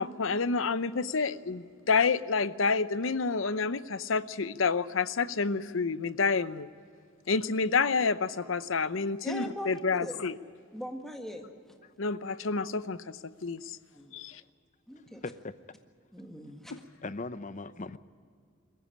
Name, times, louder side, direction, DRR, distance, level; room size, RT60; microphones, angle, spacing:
voice 1, 0.0-6.7 7.3-10.3 12.0-13.8 14.1-14.4 16.7-16.8, left 4 dB, 75° left, 0.8 m, -29 dB
voice 2, 9.2-10.2 10.7-11.8 13.9-14.2 14.9-15.2 16.1-16.8, equal, ahead, 1.7 m, -41 dB
voice 3, 11.8-12.2 14.3-14.4 15.0-15.5 17.0-18.0, left 3 dB, 35° left, 0.7 m, -40 dB
22.5 x 15.0 x 10.0 m
head